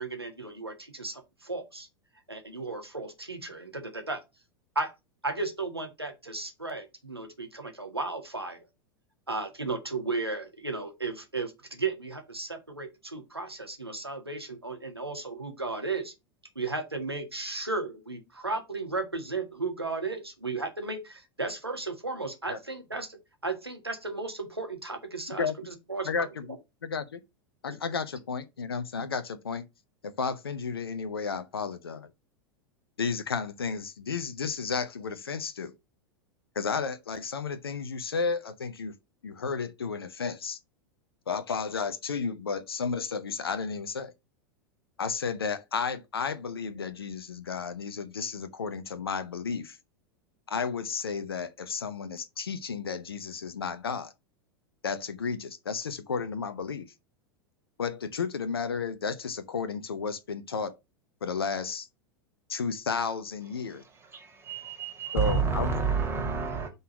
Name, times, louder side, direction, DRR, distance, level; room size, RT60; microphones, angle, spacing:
voice 1, 0.0-1.9 2.3-4.2 4.7-4.9 5.2-8.7 9.3-16.1 16.5-26.1 27.7-27.8, right 3 dB, 85° right, 1.4 m, -35 dB
voice 2, 26.1-26.5 26.8-27.2 27.6-29.6 30.0-32.1 33.0-35.7 36.5-38.9 39.2-40.6 41.3-44.1 45.0-49.8 50.5-54.1 54.8-56.9 57.8-60.8 61.2-61.9 62.5-63.8 65.1-65.7, left 5 dB, 75° left, 0.7 m, -32 dB
voice 3, 63.6-66.7, right 5 dB, 20° right, 1.9 m, -30 dB
5.5 x 3.9 x 6.0 m
figure-of-eight pair, 90°, 13 cm